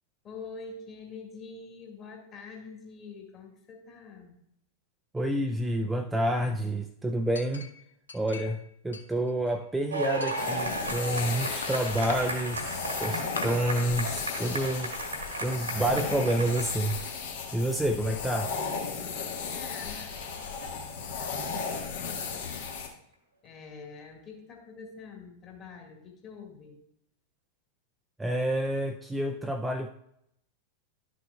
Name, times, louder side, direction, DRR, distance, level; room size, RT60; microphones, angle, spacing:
voice 1, 0.2-4.4 19.5-22.8 23.4-26.8, left 4 dB, 30° left, 1 dB, 1.8 m, -46 dB
voice 2, 5.1-7.7 8.1-14.9 15.4-17.0 17.5-18.5 28.2-29.9, right 1 dB, 10° right, 5 dB, 0.4 m, -29 dB
Chink clink, 7.3-8.6 8.9-9.7 10.2-11.3 11.6-12.2 12.8-12.9 13.4-13.5, left 5 dB, 75° left, 0.7 m, -41 dB
sound 1, 9.9-17.2 18.2-18.3, right 2 dB, 80° right, 1.6 m, -35 dB
sound 2, 10.4-22.9, left 5 dB, 55° left, 1.2 m, -35 dB
11.5 x 6.3 x 2.3 m, 0.75 s
figure-of-eight pair, 90°, 0 cm